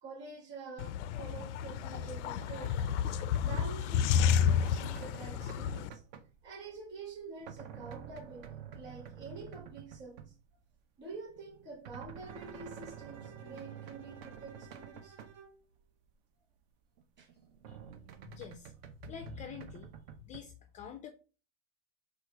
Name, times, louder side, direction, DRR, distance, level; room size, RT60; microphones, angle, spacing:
voice 1, 0.0-2.8 3.4-6.0 6.4-10.3 11.0-15.2 17.2-17.3, right 4 dB, 30° right, 2.6 m, -47 dB
sound 1, 0.8-5.9, left 8 dB, 85° left, 0.5 m, -31 dB
sound 2, 1.3-10.4 11.1-15.5 15.8-15.9 16.1-16.2 17.0-20.4, right 8 dB, 55° right, 0.8 m, -49 dB
Bowed string instrument, 12.2-15.6, right 6 dB, 75° right, 1.7 m, -56 dB
voice 2, 18.3-19.9 20.2-21.1, left 8 dB, 20° left, 0.4 m, -47 dB
4.7 x 2.5 x 4.6 m
supercardioid pair, 135°, 34 cm